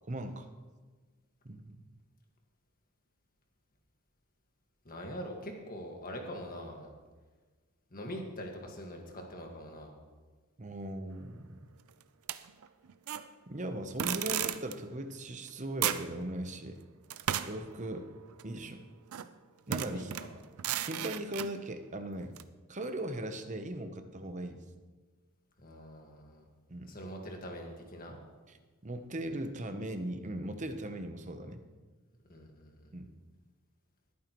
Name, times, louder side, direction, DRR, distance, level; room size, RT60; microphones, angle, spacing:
voice 1, 0.0-0.5 1.4-1.8 10.6-11.6 13.5-16.8 17.4-18.1 18.4-18.8 19.7-20.2 20.8-22.4 22.7-24.7 26.7-26.9 28.5-28.6 28.8-31.6 32.9-33.1, right 1 dB, 35° right, 8 dB, 0.8 m, -39 dB
voice 2, 4.9-6.9 7.9-9.9 19.9-20.3 25.6-26.4 26.9-28.2 32.3-32.9, equal, 40° left, 2 dB, 1.7 m, -43 dB
sound 1, 12.3-13.3 14.0-14.7 15.5-15.6 15.8-16.1 17.1-18.5 19.1-19.3 19.7-21.5 22.4-22.5, right 10 dB, 85° right, 0.5 m, -35 dB
20.5 x 9.1 x 3.1 m, 1.4 s
head